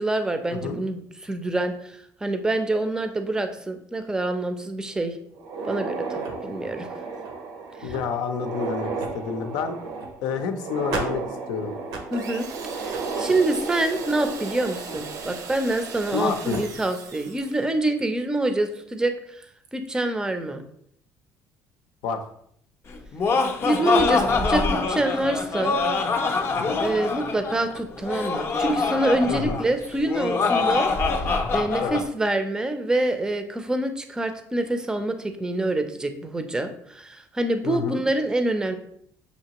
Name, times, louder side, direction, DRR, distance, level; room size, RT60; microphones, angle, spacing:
voice 1, 0.0-5.2 5.6-6.9 7.8-7.9 12.1-12.5 12.8-19.1 19.7-20.6 23.6-25.8 26.8-30.9 31.5-38.8, right 2 dB, 10° right, 7 dB, 0.5 m, -26 dB
sound 1, 5.4-16.1 16.5-16.6 17.4-17.5 18.0-18.1 19.4-19.7, right 4 dB, 90° right, 0.8 m, -33 dB
voice 2, 7.8-9.8 10.2-11.7 16.1-16.6 22.0-22.2 26.6-26.8 29.3-29.6 31.8-32.0 37.6-38.0, left 6 dB, 85° left, 7 dB, 0.6 m, -29 dB
sound 2, 12.1-17.7, right 5 dB, 60° right, 0.6 m, -39 dB
Laughter, 22.9-32.0, left 4 dB, 35° left, 0.5 m, -24 dB
6.5 x 2.8 x 2.9 m, 0.68 s
cardioid pair, 130°, 7 cm